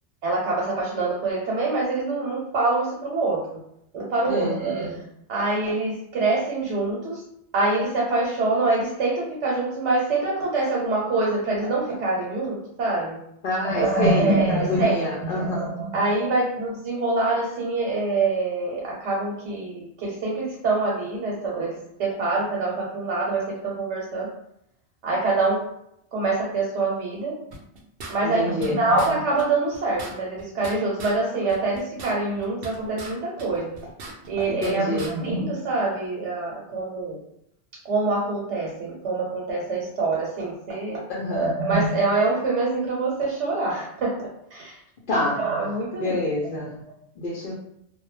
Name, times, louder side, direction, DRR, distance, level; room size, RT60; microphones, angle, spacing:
voice 1, 0.2-3.6 3.9-5.0 5.3-7.2 7.5-13.2 13.6-24.3 25.0-25.6 26.1-27.3 28.1-33.7 34.3-37.2 37.8-41.0 41.3-44.2 44.5-44.8 45.3-46.2 46.5-46.6, right 3 dB, 90° right, -3 dB, 1.0 m, -25 dB
voice 2, 4.3-4.6 13.4-15.7 28.2-28.8 34.5-35.1 41.1-41.5 45.1-45.4 46.0-46.8 47.2-47.5, left 2 dB, 55° left, -5 dB, 0.7 m, -27 dB
sound 1, 27.5-28.7 29.0-29.1 29.4-29.5 29.7-31.2 31.5-33.1 33.4-34.7 35.0-35.1, right 3 dB, 65° right, 0.7 m, -39 dB
2.2 x 2.1 x 3.1 m, 0.74 s
omnidirectional pair, 1.1 m